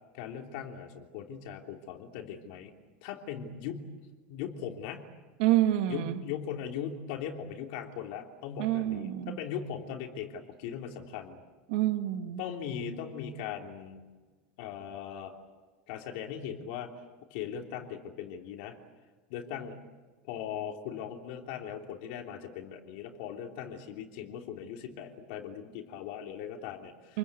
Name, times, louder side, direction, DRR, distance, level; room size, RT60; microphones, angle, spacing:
voice 1, 0.1-2.7 3.0-3.9 4.3-5.0 5.9-11.4 12.4-14.0 14.6-15.3 15.9-16.9 17.3-18.8 19.3-19.8 20.3-27.2, left 8 dB, 55° left, 3 dB, 3.3 m, -39 dB
voice 2, 5.4-6.2 8.6-9.4 11.7-12.4 27.1-27.2, right 13 dB, 60° right, 8 dB, 1.8 m, -27 dB
29.0 x 22.5 x 8.4 m, 1.3 s
supercardioid pair, 175°, 6 cm